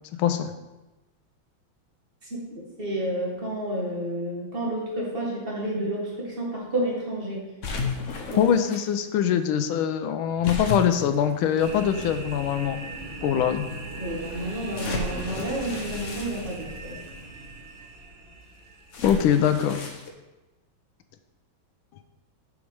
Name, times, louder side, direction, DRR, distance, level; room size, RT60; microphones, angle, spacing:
voice 1, 0.2-0.5 8.4-12.8 13.2-13.7 19.0-19.8, left 9 dB, 85° left, 10 dB, 1.4 m, -23 dB
voice 2, 2.8-7.5 8.3-8.6 14.0-17.0, right 1 dB, 30° right, -3 dB, 1.7 m, -30 dB
sound 1, 7.6-8.8 10.4-12.1 12.8-12.9 14.7-17.1 18.9-20.1, left 3 dB, 55° left, 0.9 m, -34 dB
sound 2, 11.6-19.5, right 2 dB, 80° right, 1.9 m, -39 dB
7.2 x 4.9 x 4.7 m, 1.1 s
omnidirectional pair, 2.2 m